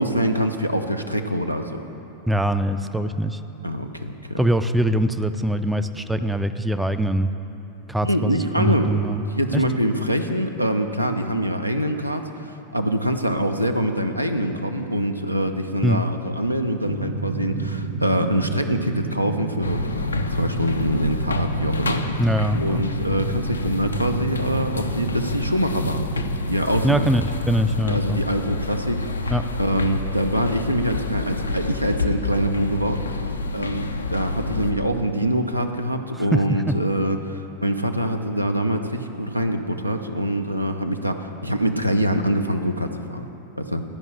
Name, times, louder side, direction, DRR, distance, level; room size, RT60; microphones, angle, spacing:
voice 1, 0.0-1.8 3.6-4.4 8.0-8.9 9.3-22.2 22.6-26.0 26.5-27.1 27.8-29.3 29.6-33.0 33.5-43.2 43.6-43.8, equal, 90° right, 6 dB, 0.5 m, -24 dB
voice 2, 2.3-3.4 4.4-7.3 7.9-9.2 9.5-9.6 15.8-16.0 22.2-22.8 26.8-28.2 29.3-29.4 36.1-36.7, right 1 dB, 5° right, 9 dB, 0.3 m, -22 dB
sound 1, 16.8-26.4, right 3 dB, 60° right, 1.1 m, -31 dB
sound 2, 19.6-34.7, left 3 dB, 75° left, 0.4 m, -28 dB
11.5 x 5.3 x 7.1 m, 3.0 s
figure-of-eight pair, 90°, 0 cm